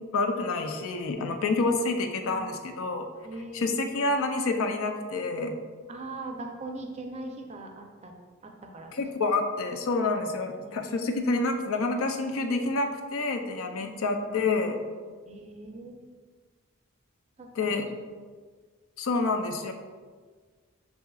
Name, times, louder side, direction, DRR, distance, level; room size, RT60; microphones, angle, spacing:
voice 1, 0.1-3.1 3.5-5.6 8.9-14.8 17.6-17.9 19.0-19.7, left 3 dB, 80° left, 5 dB, 0.5 m, -28 dB
voice 2, 2.2-2.6 3.2-3.8 5.9-8.1 8.4-9.0 10.6-11.0 13.8-13.9 15.3-16.0 17.4-17.8, right 2 dB, 30° right, 2 dB, 0.5 m, -41 dB
6.7 x 2.8 x 2.3 m, 1.5 s
head